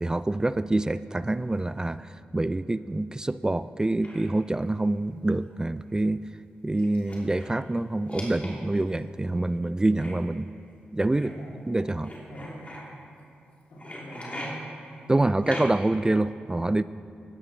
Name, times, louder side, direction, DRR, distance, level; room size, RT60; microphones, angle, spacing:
voice 1, 0.0-6.2 6.6-10.5 10.9-11.3 11.7-12.1 15.1-16.8, right 2 dB, 20° right, 15 dB, 0.3 m, -26 dB
sound 1, 4.0-4.2 5.4-5.5 5.9-6.0 6.7-7.6 8.1-8.9 10.0-10.1 11.2-11.3 12.0-12.8 13.8-14.5 15.4-15.9, left 1 dB, 35° left, 3.3 m, -39 dB
voice 2, 11.1-11.5 12.1-12.6 13.7-14.8 15.1-15.4, right 1 dB, 80° left, -5 dB, 3.0 m, -42 dB
15.5 x 11.5 x 3.3 m, 2.6 s
cardioid pair, 50°, 4 cm